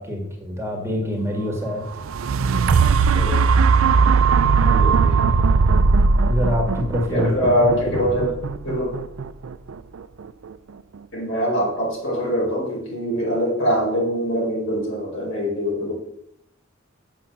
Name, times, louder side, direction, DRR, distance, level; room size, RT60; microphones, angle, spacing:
voice 1, 0.0-2.0 3.1-3.5 6.2-8.2, left 1 dB, 15° right, 0 dB, 1.8 m, -26 dB
sound 1, 1.9-9.9 10.5-10.6, right 5 dB, 85° right, 0.4 m, -18 dB
voice 2, 4.6-5.2 7.1-8.3 8.6-8.9 11.1-15.9, equal, 70° left, -3 dB, 4.5 m, -23 dB
7.1 x 6.0 x 7.3 m, 0.76 s
head